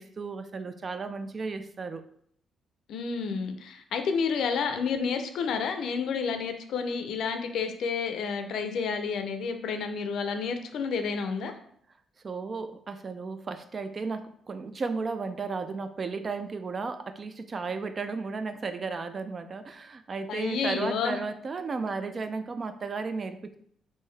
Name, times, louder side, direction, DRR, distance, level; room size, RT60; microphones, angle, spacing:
voice 1, 0.0-2.0 12.2-23.6, right 4 dB, 40° right, 10 dB, 0.3 m, -34 dB
voice 2, 2.9-11.5 20.3-21.2, left 5 dB, 75° left, 7 dB, 0.4 m, -30 dB
3.6 x 2.6 x 3.2 m, 0.65 s
cardioid pair, 90°, 0 cm